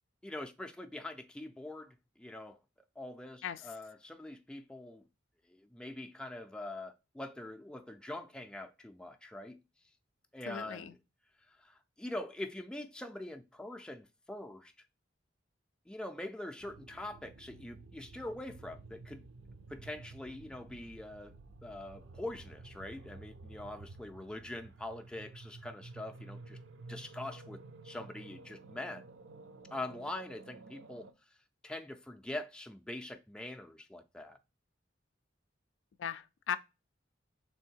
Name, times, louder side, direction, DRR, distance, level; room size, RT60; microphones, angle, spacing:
voice 1, 0.2-2.6 3.0-5.1 5.5-9.6 10.3-11.0 11.5-14.7 15.9-19.3 19.7-21.4 21.6-26.6 26.9-29.0 29.7-31.1 31.6-34.4, left 1 dB, 5° left, 0.4 m, -44 dB
voice 2, 10.5-10.9 36.0-36.6, left 8 dB, 75° left, 0.4 m, -38 dB
sound 1, 16.6-31.1, right 3 dB, 75° right, 0.5 m, -52 dB
3.5 x 3.4 x 4.4 m
head